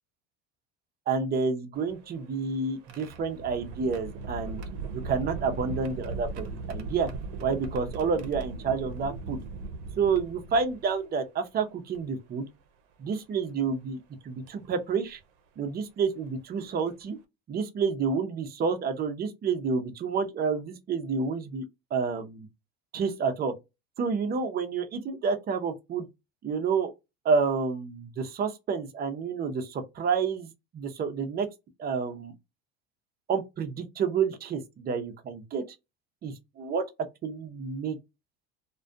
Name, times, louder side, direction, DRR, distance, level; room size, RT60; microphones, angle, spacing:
voice 1, 1.1-4.6 4.9-7.1 7.4-9.4 10.0-12.5 13.0-14.0 14.2-15.2 15.6-17.2 17.5-21.6 21.9-22.5 22.9-23.5 24.0-26.1 26.4-26.9 27.2-31.5 31.8-32.3 33.3-35.6 36.2-36.8 37.2-38.0, right 5 dB, 30° right, 0.5 m, -29 dB
sound 1, 1.7-11.0 11.9-12.0 13.5-13.7 14.5-14.7 16.3-16.4 16.8-17.0, right 3 dB, 85° right, 0.6 m, -38 dB
2.3 x 2.2 x 2.5 m
supercardioid pair, 110°, 32 cm